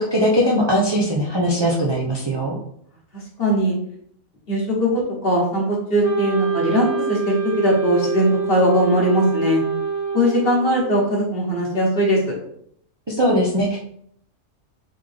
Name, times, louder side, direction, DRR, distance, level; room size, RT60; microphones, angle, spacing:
voice 1, 0.0-2.6 13.1-13.8, equal, 35° right, -3 dB, 0.4 m, -20 dB
voice 2, 3.4-3.7 4.5-9.6 10.1-12.2, equal, 40° left, -2 dB, 1.3 m, -20 dB
Wind instrument woodwind instrument, 6.0-11.1, right 5 dB, 55° right, 1.2 m, -25 dB
3.7 x 3.6 x 3.4 m, 0.68 s
omnidirectional pair, 1.5 m